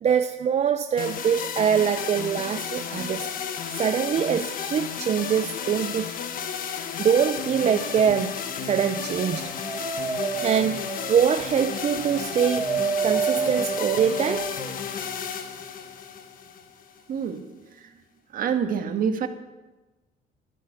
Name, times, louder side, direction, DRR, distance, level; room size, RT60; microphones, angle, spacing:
voice 1, 0.0-3.3 3.7-6.1 7.0-9.5 10.4-12.7 13.0-14.5, right 8 dB, 40° right, 9 dB, 0.6 m, -24 dB
sound 1, 1.0-17.0, left 7 dB, 55° left, 1.4 m, -33 dB
Dog, 9.2-14.8, right 5 dB, 15° right, 1.4 m, -30 dB
voice 2, 17.1-18.0 18.3-19.3, right 7 dB, 55° right, 7 dB, 1.6 m, -27 dB
13.0 x 11.5 x 6.7 m, 1.1 s
cardioid pair, 110°, 17 cm